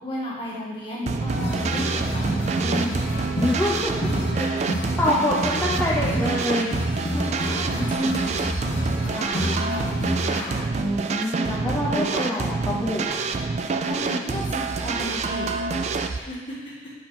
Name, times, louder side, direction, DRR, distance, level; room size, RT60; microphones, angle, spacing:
voice 1, 0.0-3.3 7.1-10.6 11.4-12.2 13.8-15.5 16.1-16.9, equal, 30° left, -6 dB, 1.7 m, -33 dB
sound 1, 1.1-16.2, right 4 dB, 40° right, 0.3 m, -27 dB
sound 2, 1.3-10.7, equal, 60° left, 1.3 m, -29 dB
voice 2, 3.4-3.9 4.3-6.7 10.8-13.2, left 1 dB, 10° left, -7 dB, 0.7 m, -26 dB
7.5 x 4.3 x 4.3 m, 1.4 s
head